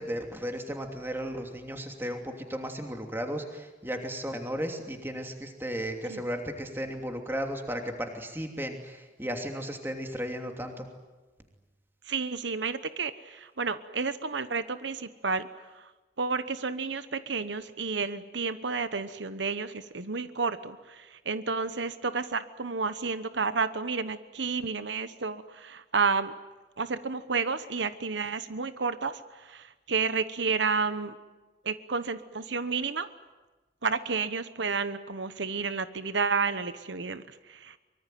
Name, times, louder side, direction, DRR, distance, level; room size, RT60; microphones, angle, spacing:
voice 1, 0.0-10.9, equal, 10° right, 3 dB, 2.9 m, -35 dB
voice 2, 12.1-15.5 15.7-15.9 16.2-26.3 26.8-31.2 31.6-33.1 33.8-37.8, right 4 dB, 80° right, 12 dB, 1.1 m, -31 dB
24.0 x 23.5 x 9.3 m, 1.2 s
head